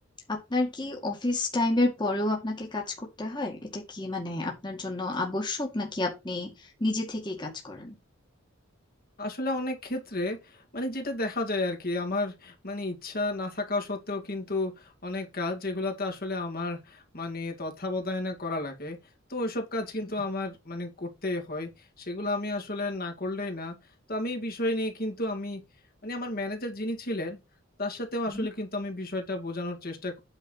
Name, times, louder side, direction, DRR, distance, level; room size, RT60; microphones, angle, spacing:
voice 1, 0.3-8.0 28.3-28.5, left 2 dB, 20° left, 2.2 m, -30 dB
voice 2, 9.2-19.0 19.3-21.7 22.0-23.8 24.1-25.6 26.0-27.4 27.8-30.2, left 2 dB, 45° left, 2.5 m, -32 dB
9.1 x 4.8 x 5.7 m
head